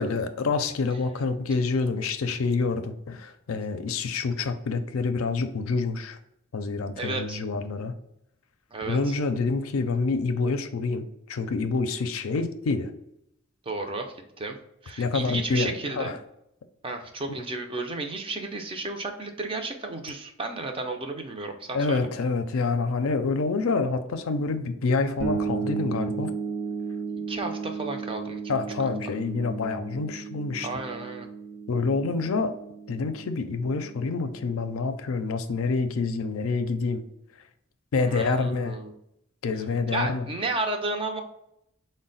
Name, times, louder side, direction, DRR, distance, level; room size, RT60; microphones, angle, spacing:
voice 1, 0.0-6.2 6.5-8.0 8.8-12.9 15.0-16.2 21.7-26.3 28.5-30.7 31.7-32.6 32.9-37.0 37.9-38.8 39.4-40.3, left 4 dB, 75° left, 9 dB, 0.4 m, -27 dB
voice 2, 7.0-7.4 8.7-9.2 13.7-14.6 14.8-16.2 16.8-22.1 27.1-28.4 29.1-29.2 30.6-31.3 38.0-38.9 39.9-41.2, right 2 dB, 25° right, 4 dB, 0.5 m, -33 dB
sound 1, 25.2-34.8, right 5 dB, 70° right, 0.8 m, -34 dB
4.0 x 2.1 x 3.9 m, 0.78 s
head